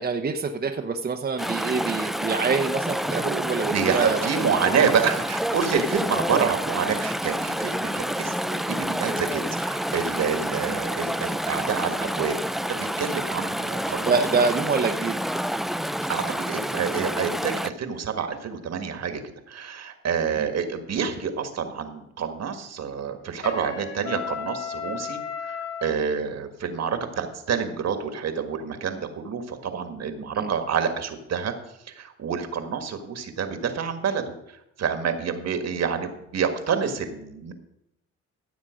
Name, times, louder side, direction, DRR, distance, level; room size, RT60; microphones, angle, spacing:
voice 1, 0.0-4.5 4.7-4.8 6.3-6.5 10.7-10.8 14.1-15.2 30.3-30.5, right 4 dB, 30° right, 3 dB, 0.9 m, -26 dB
Chatter / Stream, 1.4-17.7, equal, ahead, 0.3 m, -28 dB
voice 2, 3.6-12.4 12.7-14.3 16.1-19.2 19.5-31.5 31.9-34.3 34.8-37.5, right 6 dB, 60° right, 7 dB, 1.7 m, -28 dB
Trumpet, 23.4-26.0, left 6 dB, 55° left, 2.2 m, -34 dB
15.0 x 7.3 x 5.1 m, 0.86 s
cardioid pair, 90°, 30 cm